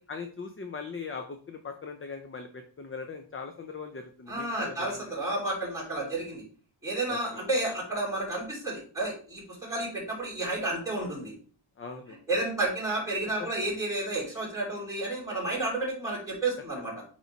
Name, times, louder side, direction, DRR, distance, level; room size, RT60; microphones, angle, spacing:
voice 1, 0.1-5.1 7.1-7.4 11.8-12.2, left 5 dB, 25° left, 6 dB, 0.5 m, -40 dB
voice 2, 4.3-6.4 6.8-11.3 12.3-17.0, right 2 dB, 5° right, -6 dB, 3.3 m, -31 dB
8.0 x 3.1 x 4.1 m, 0.42 s
wide cardioid pair, 180°, 49 cm